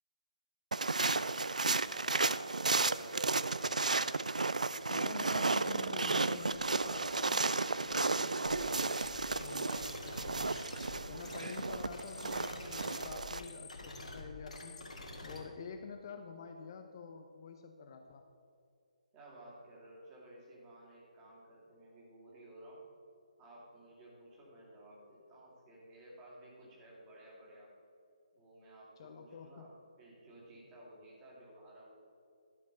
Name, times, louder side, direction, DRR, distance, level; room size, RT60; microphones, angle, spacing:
sound 1, 0.7-13.4, right 3 dB, 75° right, 0.3 m, -33 dB
voice 1, 1.9-3.6 11.7-12.0 19.1-22.8 23.4-27.7 28.3-32.0, right 1 dB, 20° right, -5 dB, 2.5 m, -55 dB
voice 2, 4.9-10.6 11.1-14.9 15.2-18.2 29.0-29.7, left 5 dB, 35° left, 5 dB, 0.5 m, -48 dB
sound 2, 6.3-8.0 8.4-15.4, left 2 dB, 65° left, 1.9 m, -48 dB
12.0 x 5.3 x 5.4 m, 2.5 s
figure-of-eight pair, 140°, 4 cm